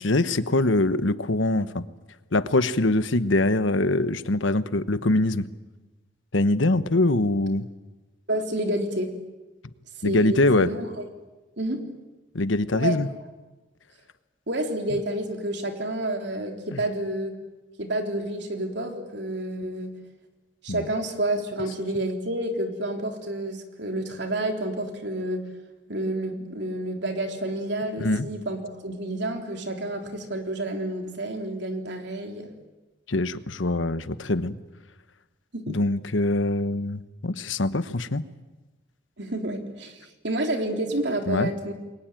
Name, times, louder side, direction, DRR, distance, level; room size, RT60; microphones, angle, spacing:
voice 1, 0.0-1.8 2.3-5.5 6.3-7.7 10.0-10.7 12.3-13.1 16.7-16.8 20.7-20.8 28.0-28.3 33.1-34.5 35.7-38.2 41.3-41.5, left 2 dB, 75° left, 13 dB, 1.1 m, -23 dB
voice 2, 8.3-9.1 10.0-10.9 11.6-11.8 12.7-13.0 14.5-17.3 17.8-19.9 20.6-25.4 25.9-32.5 35.5-35.8 39.2-41.7, right 1 dB, 60° right, 4 dB, 3.7 m, -29 dB
29.0 x 22.5 x 9.1 m, 1.1 s
head